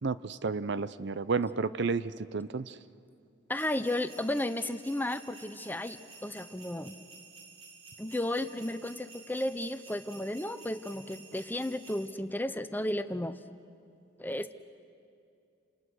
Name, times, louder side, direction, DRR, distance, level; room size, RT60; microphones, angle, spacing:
voice 1, 0.0-2.7, right 4 dB, 60° right, 15 dB, 0.6 m, -31 dB
voice 2, 3.5-7.0 8.0-13.4 14.2-14.5, left 1 dB, 10° left, 11 dB, 0.7 m, -33 dB
sound 1, 3.6-12.1, right 4 dB, 85° right, 2.7 m, -52 dB
29.5 x 28.0 x 6.3 m, 2.5 s
head